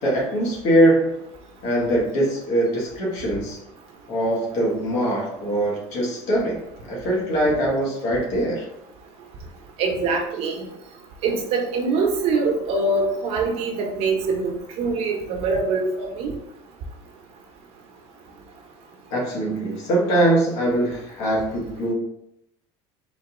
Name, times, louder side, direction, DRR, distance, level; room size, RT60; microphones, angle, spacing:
voice 1, 0.0-1.1 1.6-3.6 4.1-8.7 19.1-21.9, right 1 dB, 65° left, -4 dB, 1.7 m, -22 dB
voice 2, 9.8-10.6 11.2-16.3, right 3 dB, 55° right, 1 dB, 1.1 m, -24 dB
4.0 x 2.9 x 3.9 m, 0.77 s
cardioid pair, 145°, 12 cm